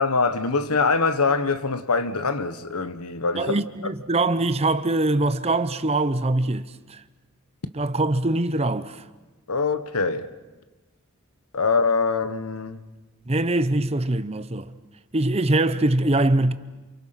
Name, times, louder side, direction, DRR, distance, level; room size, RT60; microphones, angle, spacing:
voice 1, 0.0-3.6 9.5-10.3 11.5-12.9, left 4 dB, 90° left, 1.3 m, -23 dB
voice 2, 3.4-7.0 7.8-9.0 13.3-14.7 15.1-16.5, right 2 dB, 30° right, 0.8 m, -23 dB
29.0 x 28.5 x 5.9 m
head